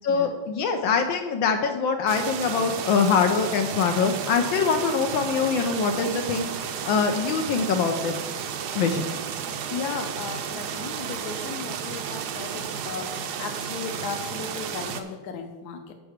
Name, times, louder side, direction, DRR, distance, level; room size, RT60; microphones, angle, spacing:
voice 1, 0.0-8.2 8.8-9.0, left 5 dB, 75° left, 5 dB, 1.4 m, -24 dB
sound 1, 2.1-15.0, right 7 dB, 65° right, 1.1 m, -33 dB
voice 2, 9.7-15.9, left 5 dB, 60° left, 6 dB, 1.3 m, -36 dB
7.9 x 5.9 x 6.5 m, 1.2 s
omnidirectional pair, 2.2 m